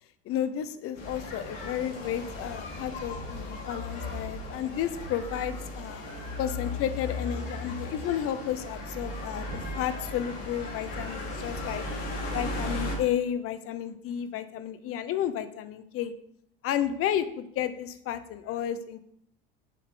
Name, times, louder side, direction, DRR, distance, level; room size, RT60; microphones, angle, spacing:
voice 1, 0.2-6.0 6.4-9.5 9.8-11.8 12.3-16.1 16.6-19.0, left 10 dB, 50° left, 12 dB, 0.8 m, -32 dB
sound 1, 0.9-12.9, left 2 dB, 65° left, 3.2 m, -36 dB
8.5 x 5.5 x 3.7 m, 0.71 s
hypercardioid pair, 80°, 30 cm